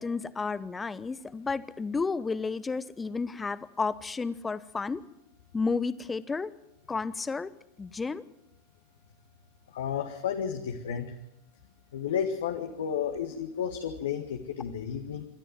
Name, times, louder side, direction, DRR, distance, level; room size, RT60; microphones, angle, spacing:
voice 1, 0.0-5.0 5.5-6.5 6.9-7.5 7.8-8.2, left 4 dB, 15° left, 17 dB, 0.9 m, -32 dB
voice 2, 9.7-11.1 11.9-15.3, left 8 dB, 60° left, 5 dB, 1.8 m, -32 dB
27.5 x 13.0 x 9.5 m, 0.86 s
figure-of-eight pair, 90°, 0 cm